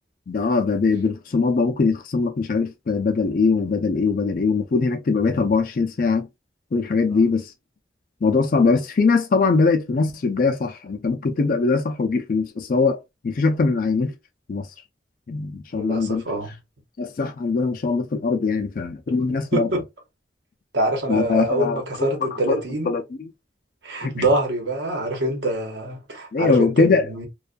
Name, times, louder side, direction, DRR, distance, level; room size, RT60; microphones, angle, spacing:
voice 1, 0.3-6.3 6.7-7.5 8.2-13.0 13.2-14.1 14.5-14.7 15.3-16.2 17.0-19.7 21.1-21.8 22.5-22.6 22.9-23.0 24.0-24.3 26.3-27.1, left 4 dB, 50° left, 0.4 m, -21 dB
voice 2, 15.7-16.5 19.1-19.8 20.7-23.0 23.8-27.3, right 1 dB, 85° right, 1.0 m, -25 dB
2.5 x 2.3 x 2.2 m
head